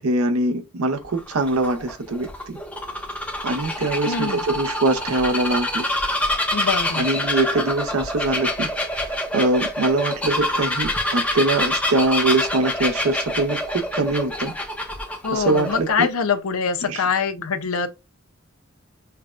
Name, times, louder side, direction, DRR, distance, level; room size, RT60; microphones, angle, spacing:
voice 1, 0.0-2.6 3.4-5.8 7.0-8.7 8.9-14.5 15.3-16.1 16.8-17.0, right 2 dB, 90° right, 0.7 m, -23 dB
Bird vocalization bird call bird song, 1.0-16.1, left 1 dB, 5° left, 0.7 m, -26 dB
voice 2, 4.1-4.5 6.5-7.1 15.2-17.9, left 5 dB, 80° left, 0.6 m, -24 dB
5.6 x 2.2 x 2.4 m
head